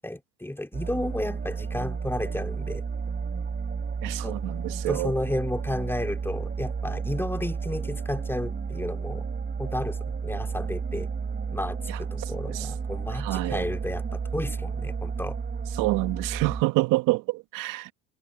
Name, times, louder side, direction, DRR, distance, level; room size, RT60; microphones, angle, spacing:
voice 1, 0.0-2.8 4.2-4.4 4.9-9.2 9.6-11.1 11.5-15.4, left 1 dB, 5° left, 3.4 m, -32 dB
sound 1, 0.7-16.6, right 5 dB, 30° right, 4.8 m, -32 dB
voice 2, 4.0-5.1 11.9-12.0 12.5-12.7 13.2-13.6 15.8-17.9, right 21 dB, 65° right, 2.0 m, -27 dB
hypercardioid pair, 70°, 34 cm